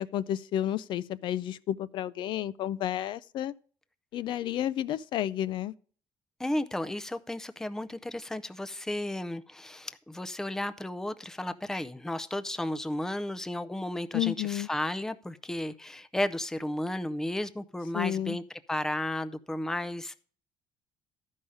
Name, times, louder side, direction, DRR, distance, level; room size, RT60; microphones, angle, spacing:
voice 1, 0.0-3.5 4.1-5.7 14.1-14.7 17.9-18.4, left 11 dB, 60° left, 0.4 m, -31 dB
voice 2, 6.4-18.4 18.7-20.2, left 1 dB, 5° left, 0.5 m, -33 dB
13.0 x 5.6 x 4.8 m
cardioid pair, 130°, 9 cm